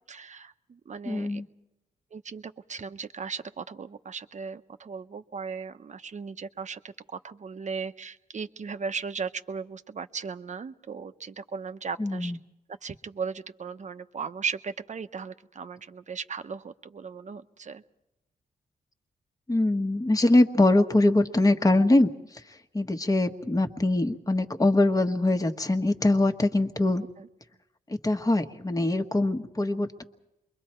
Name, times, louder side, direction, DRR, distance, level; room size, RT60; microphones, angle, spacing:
voice 1, 0.1-1.4 2.1-12.3 12.8-17.8 27.2-27.3, right 5 dB, 50° right, 9 dB, 1.0 m, -37 dB
voice 2, 1.1-1.5 12.0-12.4 19.5-22.1 22.7-27.0 27.9-30.0, left 2 dB, 20° left, 6 dB, 1.4 m, -23 dB
28.5 x 23.0 x 4.5 m, 0.90 s
cardioid pair, 75°, 16 cm